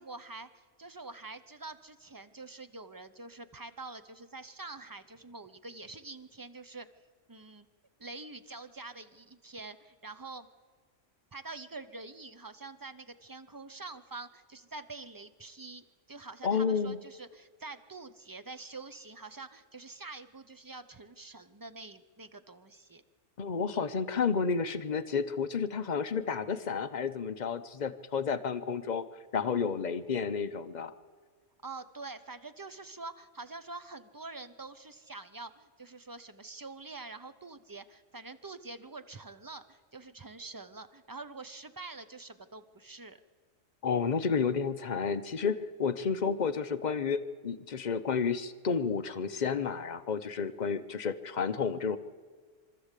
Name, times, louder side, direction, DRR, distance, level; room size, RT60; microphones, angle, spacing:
voice 1, 0.0-6.9 7.3-7.7 8.0-10.5 11.3-23.0 29.4-29.8 31.6-43.2, right 3 dB, 25° right, 11 dB, 0.5 m, -46 dB
voice 2, 16.4-17.0 23.4-29.0 29.3-30.9 43.8-52.0, left 6 dB, 40° left, 10 dB, 0.8 m, -31 dB
24.5 x 13.0 x 8.2 m, 1.5 s
omnidirectional pair, 1.3 m